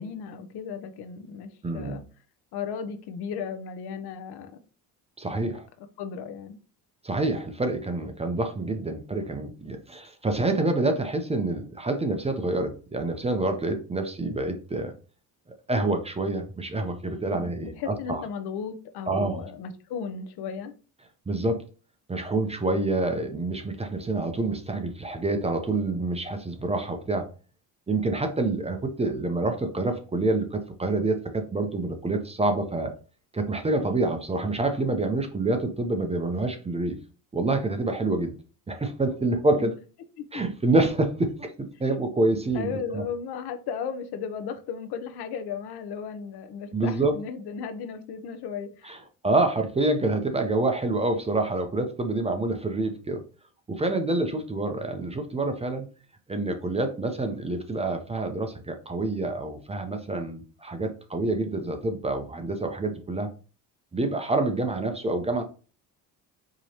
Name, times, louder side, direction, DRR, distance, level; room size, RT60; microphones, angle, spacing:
voice 1, 0.0-2.0 2.5-4.6 6.0-6.6 17.3-20.7 39.6-39.7 40.2-40.4 42.5-48.9, left 6 dB, 70° left, 0.7 m, -35 dB
voice 2, 1.6-2.0 5.2-5.7 7.0-14.9 15.7-18.2 19.1-19.4 21.3-21.6 22.1-27.3 27.9-32.9 33.3-37.0 37.3-38.3 38.7-39.7 40.3-43.0 46.7-47.2 48.8-53.2 53.7-55.9 56.3-63.3 63.9-65.4, right 2 dB, 15° right, 0.5 m, -27 dB
4.7 x 2.9 x 2.8 m
cardioid pair, 115°, 40 cm